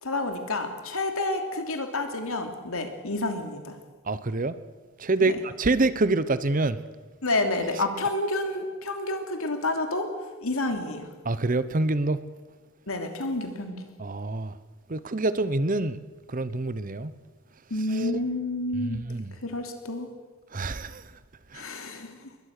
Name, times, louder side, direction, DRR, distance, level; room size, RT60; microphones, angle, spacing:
voice 1, 0.0-3.8 5.2-5.3 7.2-10.1 10.4-11.1 12.9-13.8 17.7-19.0 19.4-20.1 21.5-22.3, left 2 dB, 70° left, 2.9 m, -29 dB
voice 2, 4.1-4.6 5.0-6.8 11.2-12.2 14.0-14.6 14.9-16.0 16.3-17.1 17.9-18.2 18.8-19.3 20.5-21.1 21.5-21.7, right 2 dB, 35° right, 0.8 m, -26 dB
21.5 x 21.0 x 6.6 m
head